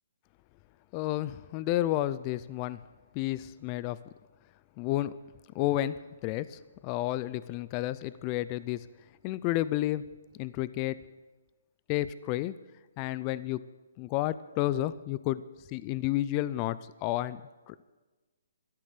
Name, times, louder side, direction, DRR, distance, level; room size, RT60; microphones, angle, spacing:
voice 1, 0.9-2.8 3.1-4.0 4.8-5.1 5.5-6.0 6.2-8.9 9.2-10.0 10.4-11.0 11.9-12.5 13.0-13.6 14.0-15.4 15.7-17.4 17.7-17.9, left 15 dB, 25° left, 17 dB, 0.4 m, -31 dB
14.0 x 13.0 x 6.7 m, 1.2 s
hypercardioid pair, 155°, 0 cm